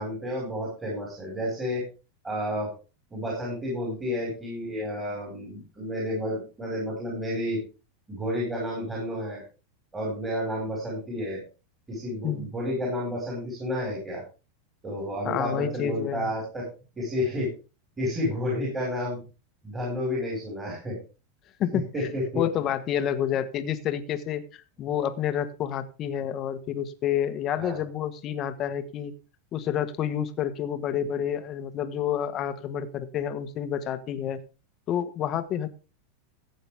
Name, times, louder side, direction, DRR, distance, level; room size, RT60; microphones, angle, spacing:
voice 1, 0.0-1.8 2.2-2.7 3.1-7.6 8.1-9.4 9.9-11.4 11.9-14.2 14.8-16.7 17.0-17.5 18.0-19.2 19.6-21.0 21.9-22.4 27.6-27.8, left 1 dB, 15° right, -3 dB, 5.0 m, -31 dB
voice 2, 15.2-16.3 21.6-22.1 22.3-29.1 29.5-34.4 34.9-35.7, left 9 dB, 35° left, 10 dB, 1.3 m, -29 dB
14.5 x 8.0 x 3.5 m, 0.32 s
supercardioid pair, 140°, 0 cm